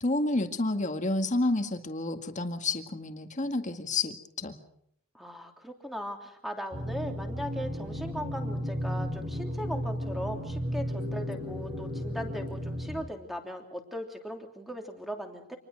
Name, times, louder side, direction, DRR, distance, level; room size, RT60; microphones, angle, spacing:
voice 1, 0.0-4.6, left 2 dB, 35° left, 6 dB, 2.0 m, -30 dB
voice 2, 5.1-15.6, equal, ahead, 4 dB, 3.1 m, -38 dB
sound 1, 6.7-13.0, equal, 40° right, 6.8 m, -34 dB
27.0 x 20.5 x 6.5 m, 0.69 s
head